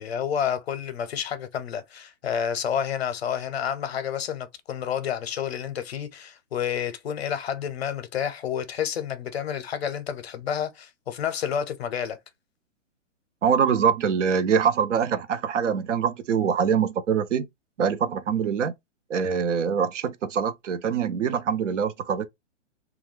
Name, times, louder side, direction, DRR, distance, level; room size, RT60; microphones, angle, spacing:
voice 1, 0.0-12.2, left 8 dB, 55° left, 0.6 m, -29 dB
voice 2, 13.4-17.4 17.8-18.7 19.1-22.3, right 7 dB, 70° right, 0.6 m, -24 dB
2.3 x 2.2 x 3.0 m
hypercardioid pair, 175°, 38 cm